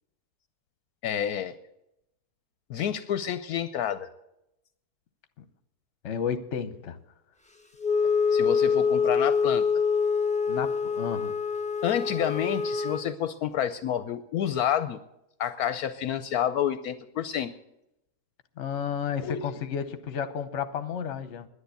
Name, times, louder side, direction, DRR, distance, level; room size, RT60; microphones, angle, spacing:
voice 1, 1.0-1.5 2.7-4.1 8.3-9.6 11.8-15.0 15.4-17.5 19.2-19.4, left 9 dB, 75° left, 1.1 m, -29 dB
voice 2, 6.0-7.0 10.5-11.3 18.6-21.5, left 7 dB, 50° left, 1.1 m, -32 dB
Wind instrument woodwind instrument, 7.8-13.1, left 5 dB, 5° left, 0.8 m, -25 dB
10.5 x 10.5 x 8.3 m
omnidirectional pair, 1.7 m